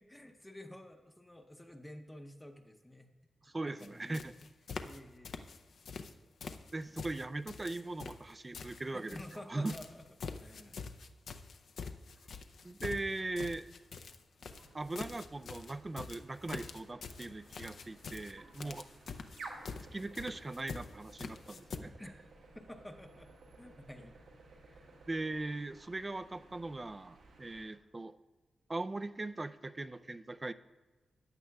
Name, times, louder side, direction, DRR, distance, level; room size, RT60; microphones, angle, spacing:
voice 1, 0.0-3.1 3.7-4.4 4.8-5.4 8.9-10.0 10.4-10.8 18.6-18.8 22.0-22.2 22.5-24.2 24.6-24.9, left 1 dB, 10° left, 5 dB, 0.7 m, -51 dB
voice 2, 3.4-4.3 6.7-9.2 9.5-9.7 12.6-13.7 14.7-18.9 19.9-21.9 25.1-28.2 28.7-30.5, right 2 dB, 20° right, 13 dB, 0.3 m, -39 dB
sound 1, 3.8-5.0 5.2-6.1 6.4-9.4 9.7-21.8, left 5 dB, 65° left, 0.5 m, -45 dB
sound 2, 14.4-27.8, right 3 dB, 90° right, 1.7 m, -56 dB
14.5 x 9.8 x 2.3 m, 1.2 s
wide cardioid pair, 140°, 0 cm